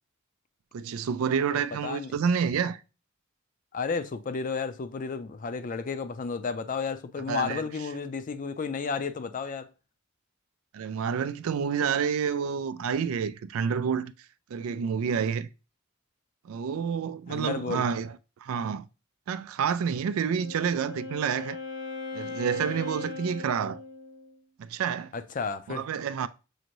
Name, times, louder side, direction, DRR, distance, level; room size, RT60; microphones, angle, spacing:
voice 1, 0.7-2.8 7.3-7.7 10.7-14.1 14.5-15.5 16.4-18.9 19.3-21.6 22.1-23.8 24.6-25.1 25.7-26.3, right 7 dB, 80° right, 0.3 m, -29 dB
voice 2, 1.8-2.1 3.7-9.7 17.3-17.9 25.1-25.8, left 5 dB, 40° left, 0.4 m, -32 dB
Wind instrument woodwind instrument, 20.0-24.4, left 4 dB, 80° left, 1.4 m, -39 dB
6.3 x 2.5 x 3.0 m
head